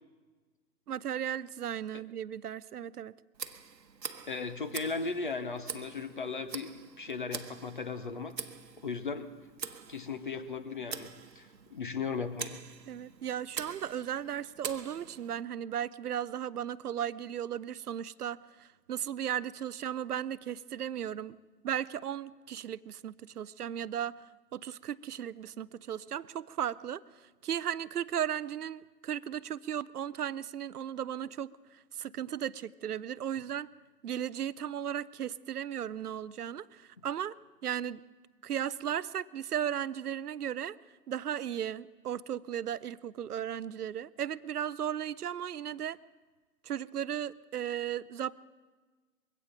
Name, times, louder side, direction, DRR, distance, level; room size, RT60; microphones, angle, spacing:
voice 1, 0.9-3.1 12.9-21.4 21.6-24.2 24.5-27.0 27.4-31.5 31.9-33.7 34.0-37.3 37.6-38.0 38.4-40.8 41.1-46.0 46.6-48.4, right 9 dB, 65° right, 19 dB, 0.6 m, -36 dB
Tick, 3.3-15.4, right 6 dB, 85° right, 1.2 m, -45 dB
voice 2, 4.3-8.4 8.8-9.3 9.9-12.6, left 4 dB, 30° left, 12 dB, 0.6 m, -37 dB
22.0 x 16.5 x 3.9 m, 1.3 s
figure-of-eight pair, 145°, 49 cm